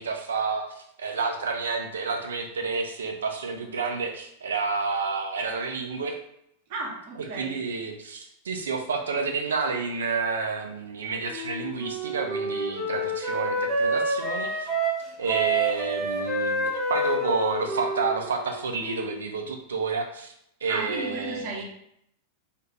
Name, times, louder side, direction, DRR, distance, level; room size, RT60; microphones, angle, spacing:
voice 1, 0.0-6.2 7.3-14.7 15.2-20.3 20.6-21.5, right 4 dB, 65° right, 3 dB, 0.4 m, -30 dB
voice 2, 6.7-7.6 20.6-21.6, right 3 dB, 50° right, -3 dB, 0.8 m, -34 dB
Wind instrument woodwind instrument, 11.3-19.3, right 1 dB, 15° right, 0.8 m, -28 dB
2.4 x 2.4 x 3.0 m, 0.72 s
figure-of-eight pair, 90°, 0 cm